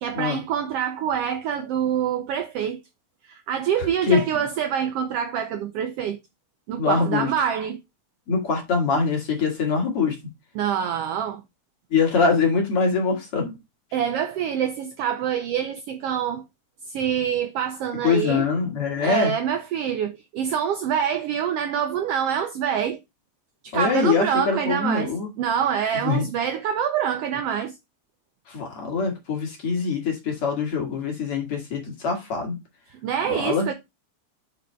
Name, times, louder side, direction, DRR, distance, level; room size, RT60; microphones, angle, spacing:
voice 1, 0.0-2.8 3.3-6.2 6.7-7.8 10.5-11.4 13.9-16.4 16.9-18.5 19.0-23.0 23.6-27.8 33.0-33.7, right 8 dB, 85° right, 1.3 m, -26 dB
voice 2, 6.8-7.3 8.3-10.2 11.9-13.5 18.0-19.3 23.7-25.3 26.0-26.2 28.5-32.6 33.3-33.7, left 5 dB, 55° left, 2.6 m, -23 dB
5.6 x 4.1 x 4.3 m
omnidirectional pair, 3.4 m